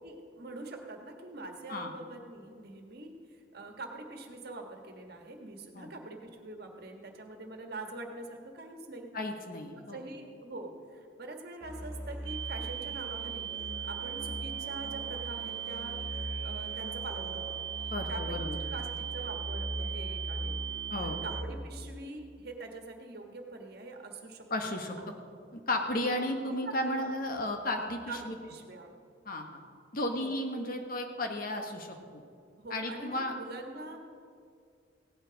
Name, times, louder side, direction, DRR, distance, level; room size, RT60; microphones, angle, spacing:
voice 1, 0.0-9.1 9.9-13.5 13.8-16.0 16.4-17.6 18.1-20.6 21.0-25.1 26.5-27.1 28.1-28.9 30.1-30.3 32.6-34.0, right 2 dB, 60° right, 3 dB, 1.5 m, -44 dB
voice 2, 9.1-10.0 17.9-18.6 20.9-21.2 24.5-25.0 25.5-28.4 29.2-29.6 29.9-32.2 32.7-33.3, left 1 dB, 50° left, 4 dB, 1.3 m, -34 dB
Musical instrument, 11.6-21.7, equal, 35° left, 3.5 m, -40 dB
sound 1, 12.3-21.4, right 11 dB, 85° right, 0.6 m, -39 dB
16.5 x 9.8 x 5.1 m, 2.3 s
head